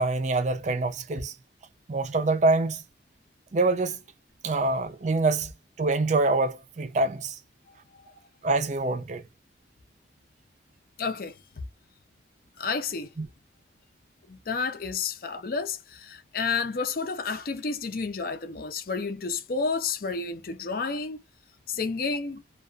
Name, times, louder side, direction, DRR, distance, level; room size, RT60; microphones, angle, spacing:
voice 1, 0.0-1.3 1.9-2.8 3.5-4.0 4.4-5.5 5.8-7.4 8.4-9.2 13.2-13.3, right 3 dB, 40° right, 0.4 m, -25 dB
voice 2, 11.0-11.4 12.6-13.1 14.3-21.2 21.7-22.4, left 4 dB, 50° left, 0.5 m, -30 dB
2.3 x 2.3 x 2.4 m
head